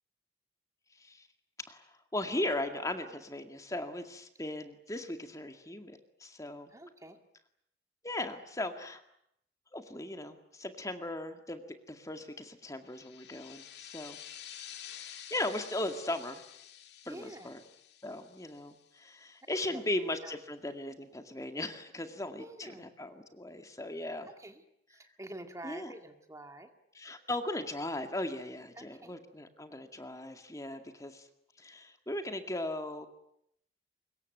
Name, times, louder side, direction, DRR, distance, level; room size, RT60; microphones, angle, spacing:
voice 1, 2.1-6.7 8.0-9.0 9.7-11.6 11.9-14.2 14.9-16.4 17.0-17.6 18.0-24.3 25.6-25.9 26.9-31.3 31.6-33.1, left 1 dB, 20° left, 7 dB, 2.1 m, -38 dB
voice 2, 6.7-7.2 17.1-17.5 19.7-19.8 20.2-20.4 22.4-22.9 24.3-24.6 24.9-26.7 28.8-29.2, right 1 dB, 20° right, 6 dB, 2.0 m, -47 dB
sound 1, 12.9-19.2, left 10 dB, 65° left, 2.2 m, -50 dB
24.5 x 22.5 x 9.3 m, 0.74 s
head